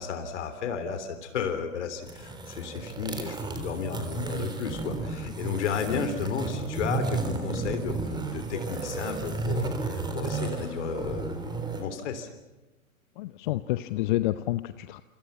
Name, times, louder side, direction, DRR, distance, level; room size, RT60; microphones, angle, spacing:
voice 1, 0.0-12.3, left 6 dB, 55° left, 8 dB, 3.4 m, -33 dB
sound 1, 2.0-11.8, right 3 dB, 10° right, 3.6 m, -33 dB
voice 2, 13.2-15.0, left 16 dB, 35° left, 13 dB, 0.8 m, -29 dB
28.5 x 26.0 x 5.9 m, 1.1 s
figure-of-eight pair, 110°, 43 cm